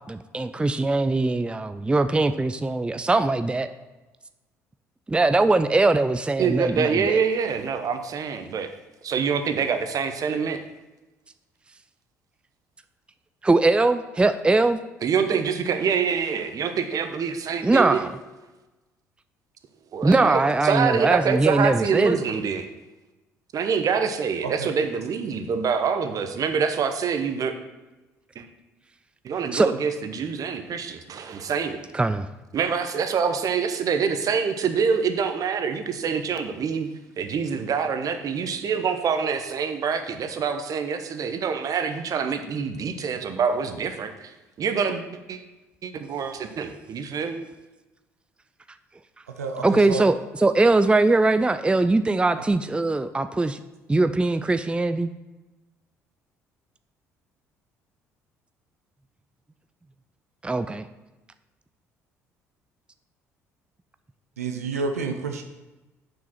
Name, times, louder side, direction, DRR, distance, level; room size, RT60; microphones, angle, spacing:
voice 1, 0.1-3.7 5.1-7.2 13.4-14.8 17.6-18.1 20.0-22.2 29.5-29.7 31.9-32.3 49.6-53.6 53.9-55.1 60.4-60.9, right 2 dB, 15° right, 11 dB, 0.5 m, -21 dB
voice 2, 6.4-8.7 9.0-10.6 15.0-18.0 19.9-22.7 23.5-27.5 28.3-28.5 29.2-31.8 32.5-36.9 37.2-45.4 45.8-47.4, right 6 dB, 50° right, 8 dB, 1.0 m, -26 dB
voice 3, 49.4-50.1 64.4-65.4, right 4 dB, 90° right, 5 dB, 0.7 m, -29 dB
7.0 x 6.1 x 5.8 m, 1.1 s
hypercardioid pair, 55°, 8 cm